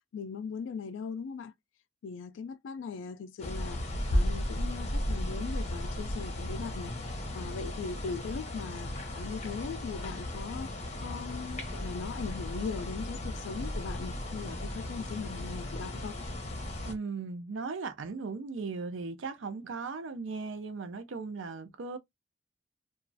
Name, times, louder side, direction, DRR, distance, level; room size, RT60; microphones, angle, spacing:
voice 1, 0.1-1.5 2.0-3.8 4.1-10.7 11.0-16.2, left 5 dB, 80° left, 0.3 m, -39 dB
sound 1, 3.4-16.9, left 1 dB, 35° left, 0.8 m, -35 dB
voice 2, 16.9-22.0, right 4 dB, 85° right, 0.5 m, -37 dB
3.0 x 2.3 x 2.5 m
head